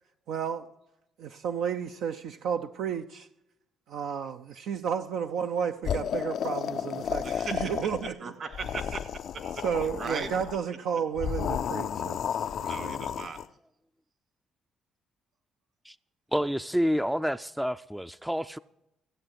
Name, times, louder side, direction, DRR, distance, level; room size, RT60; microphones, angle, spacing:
voice 1, 0.3-0.7 1.2-3.3 3.9-8.1 9.6-13.0, right 7 dB, 75° right, 0.5 m, -32 dB
sound 1, 5.8-8.2 8.5-10.6 11.2-13.5, left 8 dB, 65° left, 0.4 m, -32 dB
voice 2, 7.2-7.7 8.2-9.6 10.0-10.3 12.7-13.4, right 5 dB, 55° right, 1.9 m, -38 dB
voice 3, 16.3-18.6, equal, 5° right, 0.4 m, -28 dB
16.0 x 7.8 x 7.6 m
supercardioid pair, 60°, 0 cm